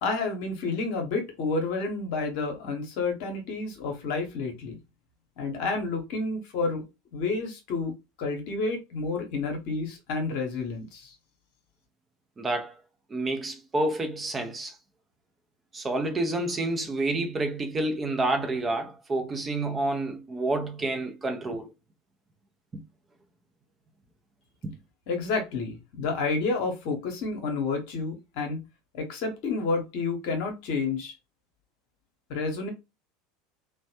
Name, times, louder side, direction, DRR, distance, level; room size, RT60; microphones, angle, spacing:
voice 1, 0.0-4.8 5.4-6.8 7.1-7.9 8.2-11.1 25.1-28.6 28.9-31.1 32.3-32.7, left 3 dB, 55° left, 0.9 m, -30 dB
voice 2, 12.4-12.7 13.1-14.8 15.7-21.7 22.7-22.8 24.6-24.8, right 2 dB, 20° right, 0.6 m, -29 dB
3.1 x 2.1 x 2.8 m
figure-of-eight pair, 75°, 0 cm